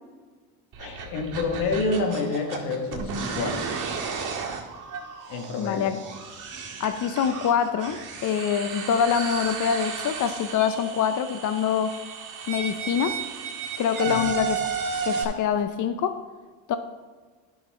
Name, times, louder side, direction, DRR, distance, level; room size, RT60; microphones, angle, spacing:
sound 1, 0.7-15.2, right 5 dB, 50° right, 1.8 m, -33 dB
voice 1, 0.8-3.7 5.3-5.9 14.1-14.2, left 3 dB, 85° left, 4 dB, 1.5 m, -28 dB
voice 2, 5.6-6.0 6.8-12.0 12.5-13.1 13.8-14.7 15.0-16.1 16.7-16.8, left 8 dB, 50° left, 9 dB, 0.6 m, -25 dB
10.5 x 5.9 x 4.1 m, 1.5 s
cardioid pair, 95°, 39 cm